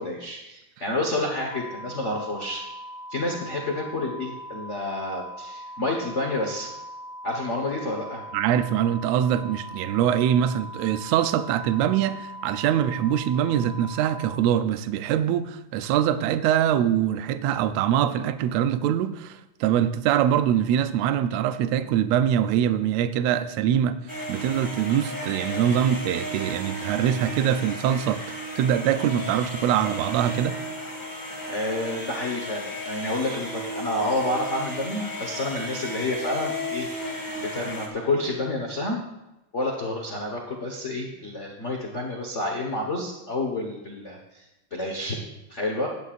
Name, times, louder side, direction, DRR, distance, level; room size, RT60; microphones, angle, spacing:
voice 1, 0.0-2.6 3.1-6.7 7.2-8.2 31.5-36.9 37.4-39.0 39.5-45.2 45.5-45.9, left 2 dB, 90° left, 0.6 m, -29 dB
sound 1, 1.5-14.3, equal, 25° right, 1.1 m, -40 dB
voice 2, 8.3-24.0 24.3-30.6, right 10 dB, 75° right, 1.6 m, -23 dB
sound 2, 24.1-37.9, equal, 10° left, 1.3 m, -34 dB
16.0 x 11.0 x 2.5 m
omnidirectional pair, 3.5 m